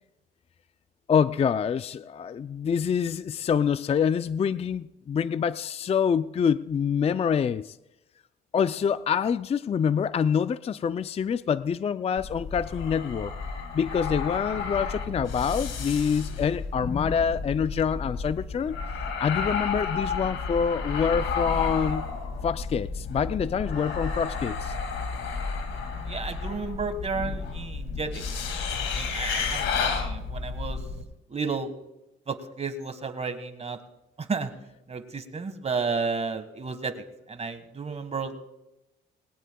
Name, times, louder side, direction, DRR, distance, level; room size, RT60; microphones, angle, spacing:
voice 1, 1.1-7.8 8.5-13.3 13.7-18.8 19.2-22.0 22.4-24.7, left 7 dB, 30° left, 14 dB, 0.4 m, -26 dB
sound 1, 12.2-31.0, left 5 dB, 75° left, 2.3 m, -32 dB
voice 2, 26.1-28.2 28.9-30.8 31.3-31.7 32.3-33.8 34.2-34.5 34.9-36.9 37.3-38.4, right 4 dB, 35° right, 9 dB, 1.5 m, -32 dB
21.0 x 18.5 x 2.3 m, 0.95 s
cardioid pair, 90°, 20 cm